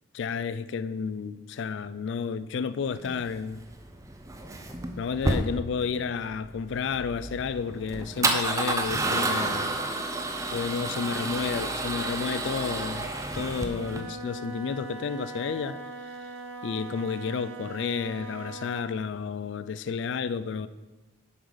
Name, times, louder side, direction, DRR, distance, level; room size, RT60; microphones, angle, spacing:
voice 1, 0.1-3.6 5.0-9.8 10.5-16.3 16.6-20.7, left 5 dB, 60° left, 0.3 m, -31 dB
Male speech man speaking / Car / Engine starting, 2.9-14.0, right 2 dB, 15° right, 0.4 m, -30 dB
Wind instrument woodwind instrument, 13.6-19.0, right 2 dB, 85° right, 0.8 m, -41 dB
7.2 x 5.0 x 5.3 m
head